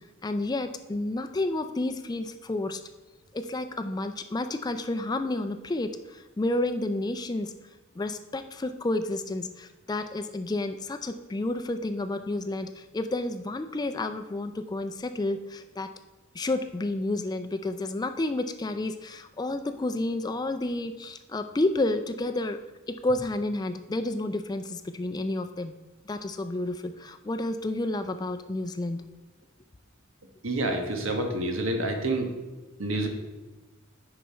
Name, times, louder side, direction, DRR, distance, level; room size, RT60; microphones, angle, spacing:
voice 1, 0.2-2.8 3.3-7.5 8.0-15.9 16.3-22.6 22.9-25.7 26.0-29.0, left 2 dB, 20° left, 8 dB, 0.4 m, -30 dB
voice 2, 30.4-32.3 32.8-33.1, right 1 dB, 85° right, 4 dB, 1.3 m, -28 dB
9.2 x 5.7 x 4.3 m, 1.1 s
head